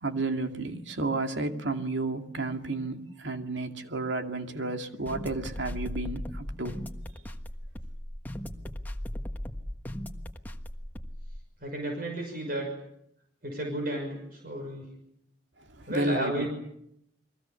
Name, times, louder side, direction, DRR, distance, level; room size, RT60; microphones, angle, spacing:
voice 1, 0.0-6.8 15.6-16.5, right 2 dB, 85° right, 2.4 m, -32 dB
sound 1, 5.1-11.4, equal, 10° left, 1.4 m, -37 dB
voice 2, 11.6-12.7 13.4-14.9 15.9-16.5, right 1 dB, 50° right, 6.1 m, -33 dB
30.0 x 22.5 x 7.1 m
head